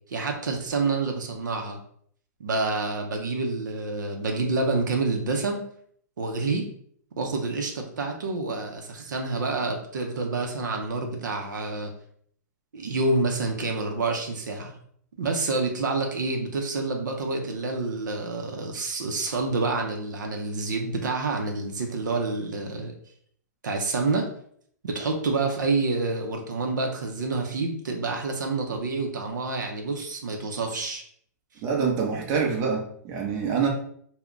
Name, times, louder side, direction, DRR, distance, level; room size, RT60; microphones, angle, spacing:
voice 1, 0.1-1.8 2.4-5.6 6.2-6.7 7.2-11.9 12.7-14.7 15.2-22.9 23.6-24.3 24.8-31.0, right 3 dB, 85° right, 2 dB, 0.6 m, -28 dB
voice 2, 31.6-33.7, right 6 dB, 35° right, 1 dB, 0.7 m, -26 dB
2.2 x 2.1 x 3.6 m, 0.63 s
hypercardioid pair, 135°, 10 cm